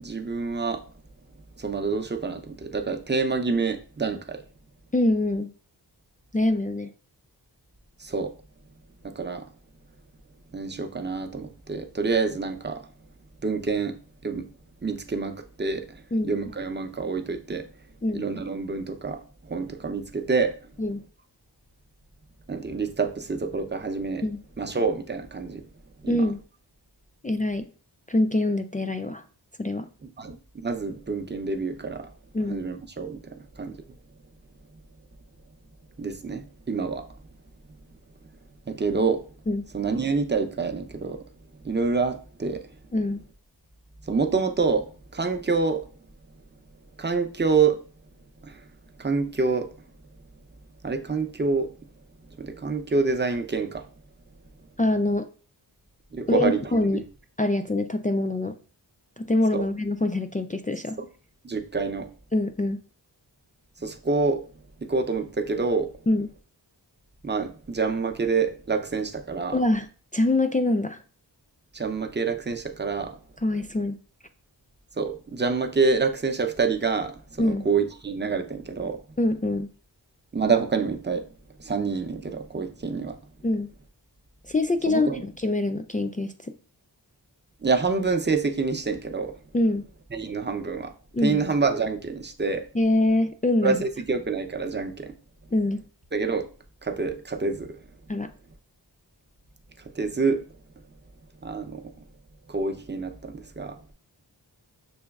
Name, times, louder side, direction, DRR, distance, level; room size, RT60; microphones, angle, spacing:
voice 1, 0.0-0.8 1.6-4.4 8.0-8.3 9.0-9.5 10.5-12.8 13.4-13.9 14.2-14.4 14.8-15.8 16.2-17.6 18.1-19.2 19.5-20.5 22.5-24.2 24.6-25.6 26.0-26.2 30.2-30.4 30.6-32.1 32.5-33.2 33.6-33.7 36.0-37.0 38.7-39.2 39.7-41.2 41.6-42.6 44.1-45.8 47.0-47.8 48.4-48.5 49.0-49.7 50.8-51.7 52.4-53.8 56.1-56.6 56.9-57.0 59.5-59.6 61.4-62.1 63.8-64.4 64.8-65.9 67.2-69.6 71.7-73.2 75.0-79.0 80.3-81.2 81.6-83.2 84.9-85.2 87.6-89.3 90.1-90.9 91.2-92.6 93.6-95.1 96.1-96.4 96.8-97.8 100.0-100.4 101.4-101.8 102.5-103.9, right 4 dB, 25° right, 7 dB, 0.6 m, -27 dB
voice 2, 4.9-5.5 6.3-6.9 16.1-16.3 18.0-18.2 20.8-21.0 24.2-24.4 26.1-26.4 27.2-27.7 28.1-29.2 29.6-29.9 32.3-32.6 39.5-39.6 42.9-43.2 54.8-55.3 56.3-57.0 57.4-58.6 59.2-61.0 62.3-62.8 66.1-66.3 69.5-69.9 70.1-71.0 73.4-74.0 77.4-77.7 79.2-79.7 83.4-83.7 84.5-86.5 89.5-89.8 91.1-91.4 92.7-93.8 95.5-95.8 98.1-98.3, left 2 dB, 20° left, 7 dB, 0.3 m, -24 dB
6.1 x 3.0 x 2.3 m, 0.38 s
wide cardioid pair, 40°, 43 cm